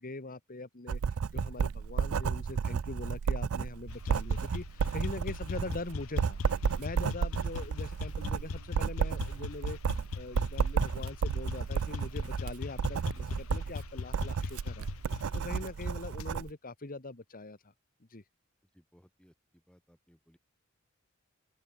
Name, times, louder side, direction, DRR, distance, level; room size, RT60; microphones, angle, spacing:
voice 1, 0.0-6.4 6.8-17.7 18.1-18.2, left 2 dB, 45° left, 1.5 m, -42 dB
Writing, 0.9-16.5, right 6 dB, 85° right, 0.4 m, -32 dB
sound 1, 3.9-16.3, left 4 dB, 80° left, 0.6 m, -40 dB
voice 2, 18.7-20.4, equal, 5° left, 7.6 m, -63 dB
open air
head